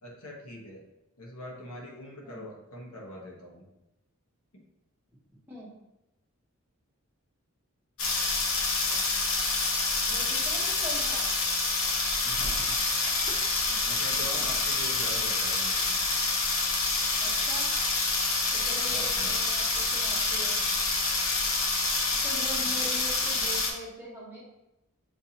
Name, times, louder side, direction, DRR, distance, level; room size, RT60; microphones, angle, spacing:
voice 1, 0.0-0.8 1.2-3.6 10.1-10.3 12.2-12.7 13.8-16.0 18.9-19.4 22.6-22.7, left 1 dB, 85° left, -3 dB, 1.2 m, -43 dB
sound 1, 8.0-23.7, left 3 dB, 65° left, 0.7 m, -27 dB
voice 2, 10.1-11.3 13.3-13.4 14.3-14.5 17.2-17.7 18.5-20.6 22.2-24.4, equal, 10° right, -5 dB, 1.0 m, -42 dB
6.7 x 2.6 x 2.9 m, 0.93 s
head